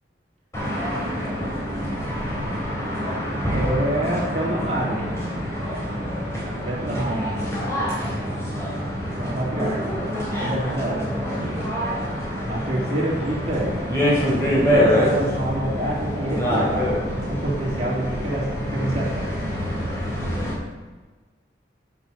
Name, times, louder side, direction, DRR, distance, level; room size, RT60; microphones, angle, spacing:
sound 1, 0.5-20.5, equal, 15° left, 3.4 m, -26 dB
voice 1, 3.4-5.0 6.4-7.4 9.0-9.8 10.3-11.1 12.5-13.8 14.7-19.3, right 1 dB, 35° right, -5 dB, 3.6 m, -27 dB
9.0 x 7.9 x 6.7 m, 1.3 s
head